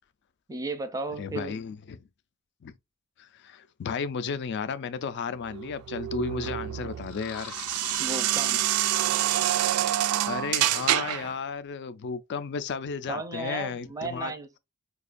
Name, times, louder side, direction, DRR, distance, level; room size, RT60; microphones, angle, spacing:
voice 1, 0.5-1.5 8.0-8.7 13.1-14.6, right 3 dB, 15° right, 0.4 m, -34 dB
voice 2, 1.2-2.0 2.6-2.8 3.2-7.5 10.0-14.3, left 5 dB, 55° left, 0.4 m, -34 dB
sound 1, 5.5-11.3, right 13 dB, 85° right, 0.3 m, -27 dB
sound 2, 7.0-9.3, left 5 dB, 90° left, 0.7 m, -43 dB
4.9 x 2.3 x 2.4 m
head